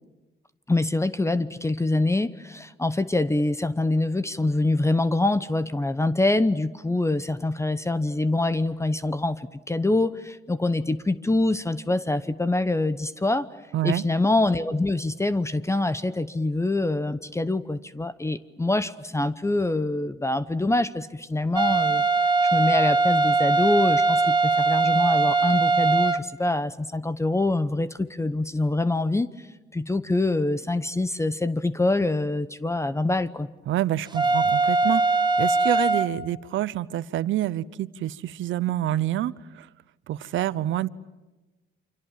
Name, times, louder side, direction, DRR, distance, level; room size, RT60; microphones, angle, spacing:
voice 1, 0.7-13.5 13.8-22.0 22.5-29.3 29.7-33.5, left 2 dB, 15° left, 14 dB, 0.9 m, -25 dB
voice 2, 13.7-14.0 33.7-39.7 40.1-40.9, right 13 dB, 75° right, 18 dB, 0.8 m, -27 dB
sound 1, 21.6-26.2 34.2-36.1, right 3 dB, 20° right, 1.5 m, -21 dB
29.0 x 26.0 x 7.5 m, 1.1 s
cardioid pair, 90°, 20 cm